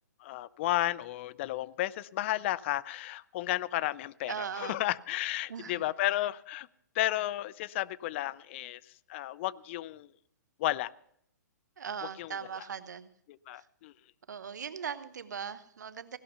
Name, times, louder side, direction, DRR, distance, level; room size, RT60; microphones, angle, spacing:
voice 1, 0.2-6.7 6.9-10.1 10.6-10.9 12.2-12.3 13.3-13.9, left 15 dB, 40° left, 0.4 m, -33 dB
voice 2, 4.3-4.8 5.5-5.8 11.8-13.1 13.5-13.7 14.3-16.2, right 7 dB, 70° right, 0.9 m, -39 dB
16.5 x 11.0 x 5.6 m
hypercardioid pair, 125°, 10 cm